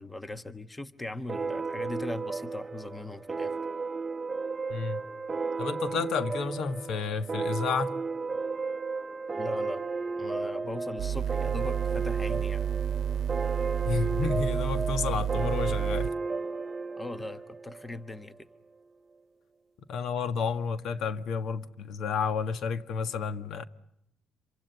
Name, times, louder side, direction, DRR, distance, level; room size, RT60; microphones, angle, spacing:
voice 1, 0.0-3.6 9.4-9.8 10.2-12.6 17.0-18.5, left 2 dB, 15° left, 1.2 m, -39 dB
sound 1, 1.3-18.4, right 4 dB, 20° right, 1.0 m, -34 dB
voice 2, 4.7-5.0 5.6-8.0 13.8-16.1 19.9-23.6, left 5 dB, 65° left, 1.5 m, -31 dB
sound 2, 11.0-16.1, right 9 dB, 75° right, 0.9 m, -30 dB
27.0 x 24.5 x 6.9 m
cardioid pair, 120°, 0 cm